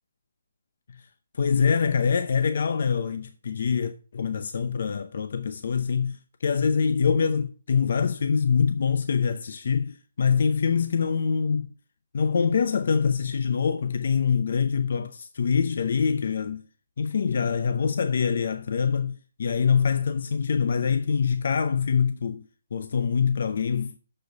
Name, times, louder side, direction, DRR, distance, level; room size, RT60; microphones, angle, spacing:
voice 1, 1.3-11.7 12.1-16.6 17.0-22.4 22.7-23.9, left 6 dB, 60° left, 0.7 m, -24 dB
7.1 x 6.8 x 4.7 m
hypercardioid pair, 165°, 0 cm